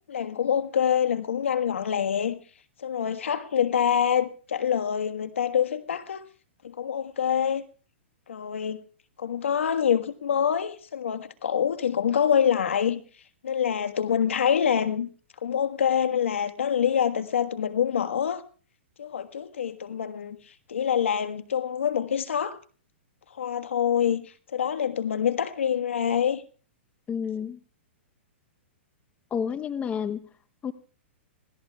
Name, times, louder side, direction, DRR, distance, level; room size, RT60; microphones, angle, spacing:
voice 1, 0.1-2.4 2.8-6.2 6.6-7.6 8.3-8.8 9.2-13.0 13.4-15.1 15.4-18.4 19.0-20.4 20.7-22.6 23.4-26.4, left 8 dB, 85° left, 1.5 m, -26 dB
voice 2, 27.1-27.6 29.3-30.3 30.6-30.7, left 7 dB, 20° left, 0.8 m, -30 dB
26.0 x 17.0 x 2.3 m
hypercardioid pair, 130°, 7 cm